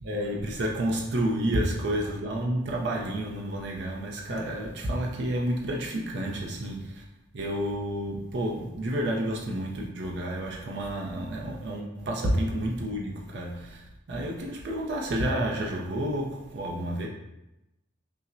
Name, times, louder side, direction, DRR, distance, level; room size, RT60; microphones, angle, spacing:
voice 1, 0.0-7.0 7.3-13.8 14.1-17.1, right 1 dB, 65° right, 0.5 m, -30 dB
5.5 x 2.1 x 2.5 m
head